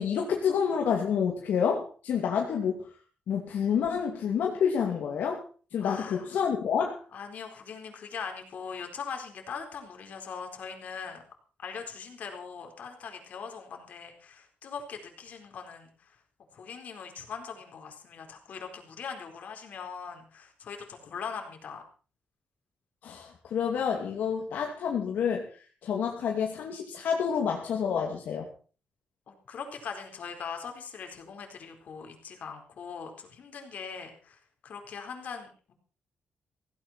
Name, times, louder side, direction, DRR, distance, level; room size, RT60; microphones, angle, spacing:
voice 1, 0.0-2.9 3.3-5.4 5.7-7.0 23.0-28.5, left 7 dB, 80° left, 0 dB, 2.5 m, -28 dB
voice 2, 5.8-6.3 7.1-11.2 11.6-16.2 16.5-21.8 29.3-35.7, left 6 dB, 60° left, 4 dB, 4.3 m, -41 dB
16.5 x 16.5 x 4.4 m, 0.39 s
wide cardioid pair, 145°, 3 cm